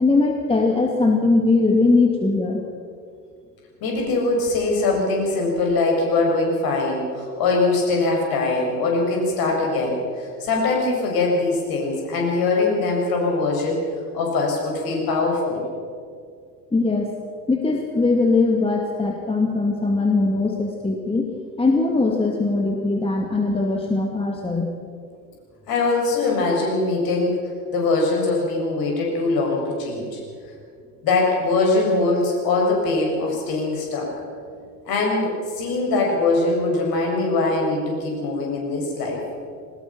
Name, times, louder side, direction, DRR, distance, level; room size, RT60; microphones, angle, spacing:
voice 1, 0.0-2.6 16.7-17.1 17.5-21.3 21.6-24.7, left 3 dB, 10° left, 1 dB, 2.2 m, -20 dB
voice 2, 3.8-13.8 14.1-15.6 25.7-27.4 27.7-30.2 31.0-34.1 34.9-39.2, left 3 dB, 45° left, 0 dB, 7.4 m, -22 dB
22.5 x 19.5 x 6.1 m, 2.3 s
figure-of-eight pair, 80°, 49 cm